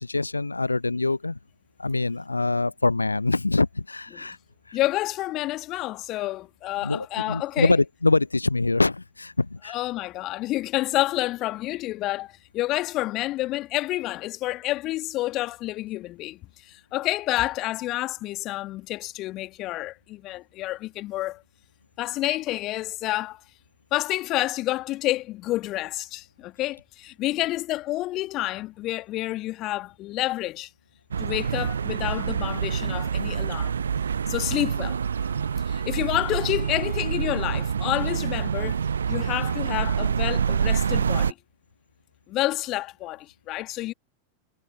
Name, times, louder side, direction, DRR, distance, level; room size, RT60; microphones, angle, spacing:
voice 1, 0.0-1.4 1.8-4.4 4.7-4.8 6.8-9.8, left 3 dB, 80° left, 0.4 m, -24 dB
voice 2, 4.7-7.8 9.6-21.4 22.0-23.4 23.9-30.7 31.2-33.8 34.3-38.8 39.1-41.4 42.3-43.9, left 17 dB, 35° left, 1.8 m, -29 dB
sound 1, 31.1-41.3, right 7 dB, 70° right, 0.6 m, -26 dB
figure-of-eight pair, 90°, 0 cm